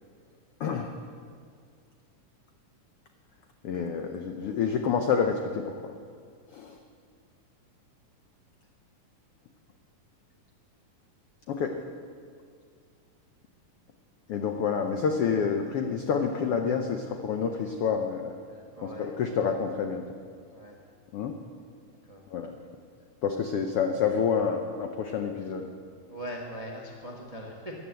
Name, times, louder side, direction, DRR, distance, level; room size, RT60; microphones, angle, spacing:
voice 1, 0.6-0.9 3.6-5.9 6.5-6.8 11.5-11.8 14.3-18.3 18.8-20.0 21.1-21.4 22.3-22.5 23.2-25.7, left 6 dB, 85° left, 5 dB, 1.2 m, -28 dB
voice 2, 18.6-19.4 20.5-20.8 22.1-22.2 26.1-27.7, equal, 40° right, -1 dB, 0.5 m, -41 dB
14.5 x 10.5 x 7.6 m, 2.2 s
omnidirectional pair, 3.7 m